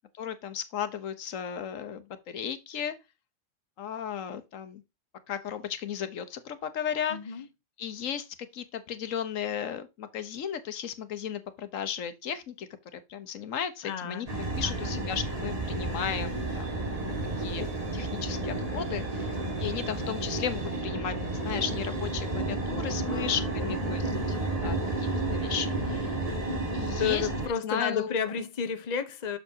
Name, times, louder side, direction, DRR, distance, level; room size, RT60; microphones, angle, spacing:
voice 1, 0.2-2.9 3.8-4.8 5.3-7.4 7.8-8.3 8.5-16.8 17.4-19.3 19.6-24.0 24.3-24.4 24.6-26.2 26.7-28.2, left 8 dB, 85° left, 1.3 m, -35 dB
voice 2, 7.1-7.5 13.8-14.4 14.6-14.9 23.1-24.4 27.0-29.4, left 7 dB, 40° left, 0.8 m, -32 dB
sound 1, 14.3-27.5, right 2 dB, 30° right, 1.8 m, -31 dB
6.8 x 6.7 x 2.7 m
omnidirectional pair, 1.3 m